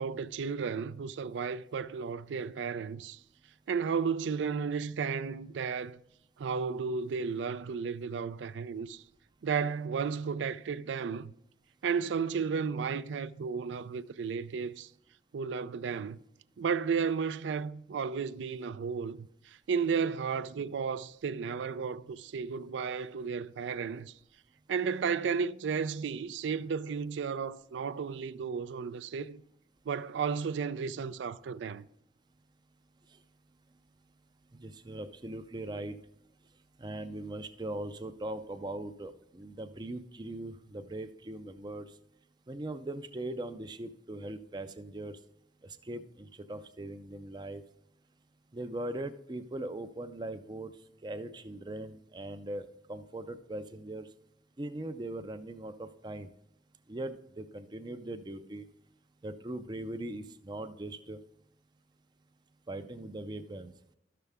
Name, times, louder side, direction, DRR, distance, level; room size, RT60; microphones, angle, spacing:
voice 1, 0.0-3.2 3.7-6.0 6.4-9.0 9.4-11.3 11.8-14.9 15.3-16.2 16.6-24.1 24.7-29.4 29.9-31.8, right 6 dB, 85° right, 0.4 m, -33 dB
voice 2, 34.6-36.0 36.8-41.9 42.5-45.2 45.6-47.6 48.5-50.7 51.0-54.1 54.6-56.3 56.9-58.6 59.2-61.2 62.7-63.7, right 1 dB, 25° right, 0.4 m, -40 dB
12.0 x 6.8 x 3.5 m
head